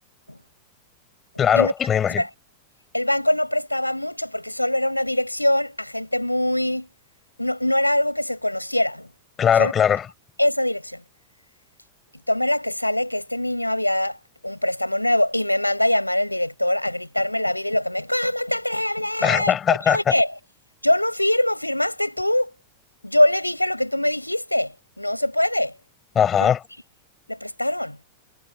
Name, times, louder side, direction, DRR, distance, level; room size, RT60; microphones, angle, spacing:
voice 1, 1.4-2.2 9.4-10.1 19.2-20.2 26.1-26.6, left 8 dB, 25° left, 5.5 m, -19 dB
voice 2, 2.9-6.9 7.4-9.1 9.6-9.7 10.4-11.0 12.3-14.2 14.4-19.5 19.9-20.3 20.8-22.5 23.0-25.7 26.4-26.5 27.3-28.0, left 1 dB, 85° left, 6.6 m, -23 dB
figure-of-eight pair, 90°, 0 cm